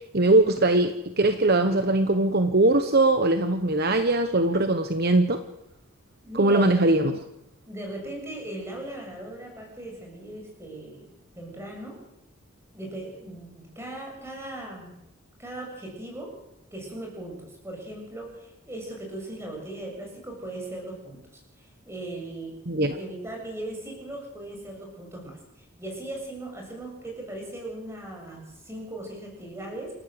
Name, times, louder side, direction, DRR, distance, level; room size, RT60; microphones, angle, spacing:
voice 1, 0.1-5.4 6.3-7.1 22.7-22.9, right 2 dB, 45° right, 8 dB, 1.1 m, -21 dB
voice 2, 6.2-7.1 7.7-11.1 11.4-12.0 12.7-14.9 15.4-16.3 16.7-29.9, right 1 dB, 10° right, 0 dB, 7.2 m, -38 dB
28.5 x 13.5 x 7.9 m, 0.88 s
head